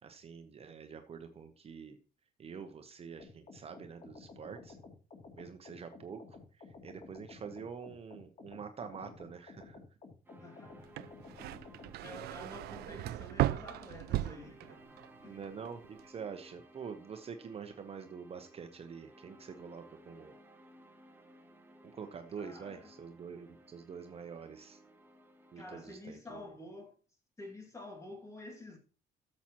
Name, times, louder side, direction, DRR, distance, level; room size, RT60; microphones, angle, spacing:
voice 1, 0.0-2.0 2.4-4.8 5.4-9.8 15.2-20.3 21.8-24.8 25.5-26.4, right 6 dB, 35° right, 0.9 m, -46 dB
sound 1, 3.2-11.9, left 3 dB, 40° left, 2.8 m, -53 dB
sound 2, 10.2-25.9, right 1 dB, 10° right, 1.3 m, -59 dB
voice 2, 10.4-11.4 12.0-15.5 22.3-22.9 25.6-27.0 27.4-28.8, left 2 dB, 20° left, 2.4 m, -49 dB
sound 3, 10.8-15.1 15.4-16.0, right 15 dB, 70° right, 0.4 m, -36 dB
13.0 x 7.4 x 3.0 m
cardioid pair, 110°, 17 cm